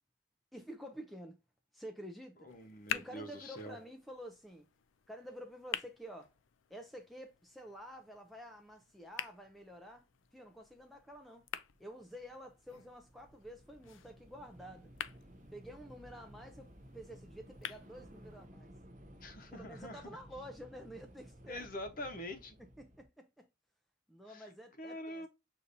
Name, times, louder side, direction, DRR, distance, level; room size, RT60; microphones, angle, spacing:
voice 1, 0.5-1.4 1.7-2.5 2.9-4.7 5.1-6.3 6.7-10.1 10.3-11.5 11.8-14.9 15.5-18.7 19.5-21.7 22.6-23.5 24.1-25.3, equal, ahead, 0.4 m, -50 dB
voice 2, 2.4-3.8 19.2-20.1 21.5-22.6 24.3-24.5 24.8-25.3, left 1 dB, 45° left, 0.9 m, -45 dB
sound 1, 2.5-18.5, left 10 dB, 70° left, 0.3 m, -48 dB
Train / Subway metro underground, 10.0-10.2 10.5-23.0, equal, 40° right, 0.6 m, -57 dB
6.6 x 2.7 x 2.6 m
head